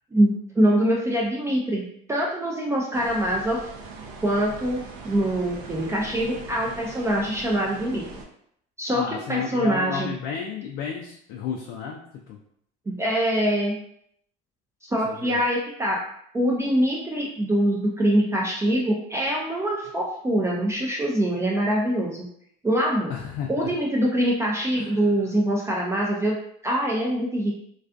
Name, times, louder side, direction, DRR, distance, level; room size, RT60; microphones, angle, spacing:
voice 1, 0.1-3.7 4.2-8.2 8.8-10.1 12.9-13.8 14.8-16.0 16.3-22.2 22.6-23.1 23.5-26.4 26.6-27.6, right 1 dB, 15° right, -3 dB, 0.4 m, -24 dB
sound 1, 2.9-8.3, right 3 dB, 90° right, 0.5 m, -41 dB
voice 2, 8.9-12.0 12.3-12.4 15.0-15.4 23.1-23.7 24.8-25.0, left 6 dB, 70° left, 0 dB, 0.4 m, -32 dB
2.3 x 2.3 x 2.4 m, 0.69 s
supercardioid pair, 105°, 20 cm